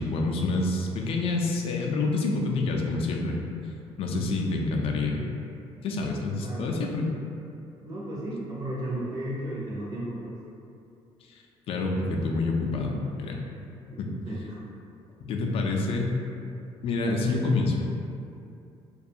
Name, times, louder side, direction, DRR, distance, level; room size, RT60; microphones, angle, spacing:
voice 1, 0.0-3.3 4.0-5.2 5.8-7.1 11.7-13.4 14.0-14.1 15.3-16.1 16.8-17.8, left 3 dB, 55° left, 0 dB, 0.4 m, -27 dB
voice 2, 7.8-10.4 13.9-14.0 14.3-14.6, right 1 dB, 35° right, -6 dB, 0.5 m, -34 dB
2.4 x 2.2 x 2.7 m, 2.6 s
cardioid pair, 115°, 11 cm